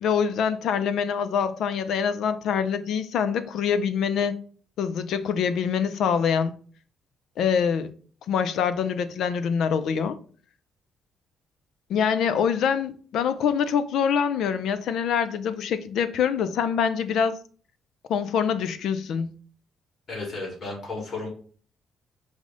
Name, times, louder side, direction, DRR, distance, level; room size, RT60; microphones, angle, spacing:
voice 1, 0.0-4.3 4.8-6.5 7.4-7.9 8.3-10.2 11.9-17.4 18.1-19.3, left 7 dB, 75° left, 0.4 m, -25 dB
voice 2, 20.1-21.3, left 3 dB, 50° left, 2.0 m, -33 dB
4.7 x 2.1 x 3.7 m
cardioid pair, 120°, 0 cm